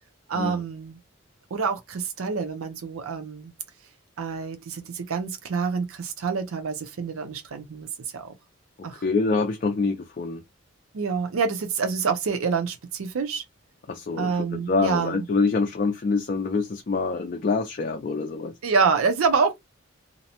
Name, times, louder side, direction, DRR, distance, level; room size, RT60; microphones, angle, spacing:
voice 1, 0.3-1.0 1.5-3.5 4.2-7.9 8.1-8.3 8.8-9.0 10.9-13.4 14.2-15.2 18.6-19.6, right 5 dB, 85° right, 0.5 m, -27 dB
voice 2, 9.0-10.4 13.9-18.5, left 4 dB, 40° left, 0.3 m, -25 dB
2.6 x 2.1 x 2.7 m
head